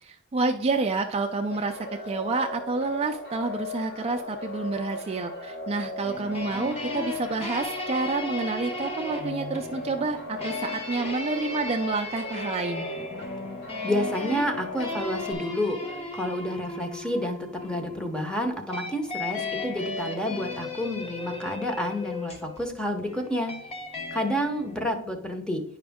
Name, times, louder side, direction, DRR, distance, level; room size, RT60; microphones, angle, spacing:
voice 1, 0.0-1.8 2.1-12.8, right 3 dB, 30° right, 4 dB, 0.4 m, -29 dB
sound 1, 1.5-15.3, left 2 dB, 50° left, 1.3 m, -37 dB
sound 2, 6.0-24.8, left 2 dB, 30° left, 1.0 m, -36 dB
voice 2, 13.8-23.5 24.1-25.6, equal, 5° left, 4 dB, 0.9 m, -29 dB
9.5 x 5.0 x 3.5 m, 0.71 s
head